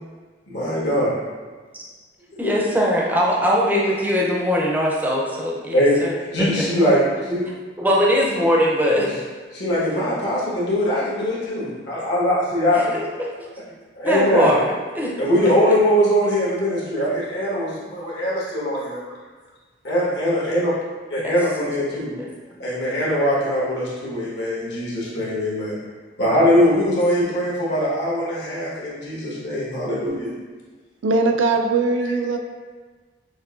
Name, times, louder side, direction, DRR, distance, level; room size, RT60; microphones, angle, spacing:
voice 1, 0.5-1.2 2.4-2.5 5.7-7.4 8.8-9.1 9.5-13.0 13.9-14.5 15.2-19.0 19.8-20.7 21.1-22.1 22.6-25.7 26.2-30.3, equal, 70° left, -7 dB, 1.2 m, -21 dB
voice 2, 2.4-6.2 7.8-9.1 12.9-13.5 14.0-14.7 14.9-15.1 21.2-21.3 21.6-21.7, equal, 10° right, -3 dB, 0.5 m, -21 dB
voice 3, 31.0-32.4, right 3 dB, 85° right, 4 dB, 0.4 m, -20 dB
6.1 x 2.5 x 2.4 m, 1.4 s
head